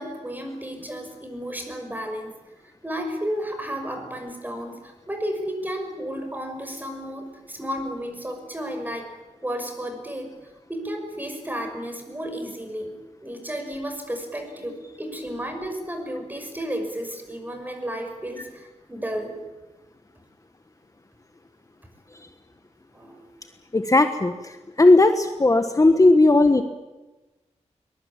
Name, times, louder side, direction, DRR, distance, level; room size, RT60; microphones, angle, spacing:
voice 1, 0.0-2.3 2.6-9.1 9.4-10.3 10.7-13.0 13.2-19.4 22.9-23.3, equal, 15° right, 5 dB, 6.0 m, -32 dB
voice 2, 23.7-24.5 24.8-26.6, left 2 dB, 30° left, 8 dB, 1.4 m, -16 dB
22.5 x 21.5 x 8.9 m, 1.1 s
wide cardioid pair, 105°, 12 cm